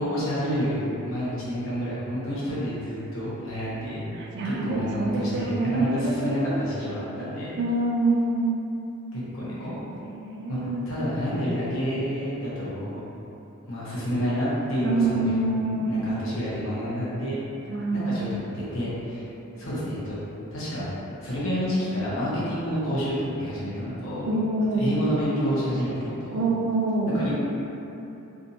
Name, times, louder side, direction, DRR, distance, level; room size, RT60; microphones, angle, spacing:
voice 1, 0.0-4.0 4.4-7.5 9.1-9.8 10.5-13.0 13.7-15.3 15.6-17.4 17.9-19.3 19.6-20.2 20.5-20.9 21.2-24.3 24.8-26.4 27.1-27.3, equal, 65° left, -9 dB, 1.0 m, -29 dB
voice 2, 4.1-6.6 7.6-8.6 9.4-9.6 9.9-10.8 14.8-16.1 17.7-18.3 24.2-24.9 26.3-27.1, right 2 dB, 55° right, -1 dB, 0.4 m, -26 dB
3.4 x 2.6 x 2.7 m, 2.9 s
head